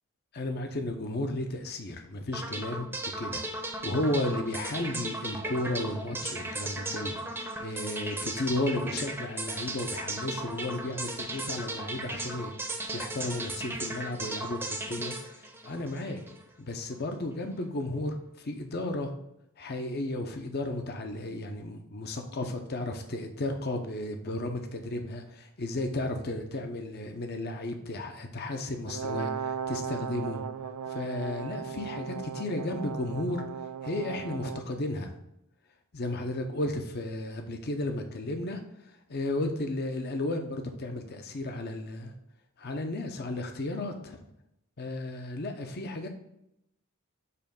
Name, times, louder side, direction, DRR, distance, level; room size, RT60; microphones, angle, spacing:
voice 1, 0.3-2.9 3.2-16.2 16.6-19.1 19.6-30.4 30.9-33.4 33.8-35.1 35.9-38.6 39.1-42.1 42.6-44.2 44.8-46.1, left 2 dB, 45° left, 5 dB, 0.7 m, -34 dB
sound 1, 2.3-16.4, right 2 dB, 10° right, 0.7 m, -36 dB
Brass instrument, 28.9-34.7, right 7 dB, 85° right, 0.5 m, -37 dB
6.9 x 3.1 x 5.1 m, 0.80 s
head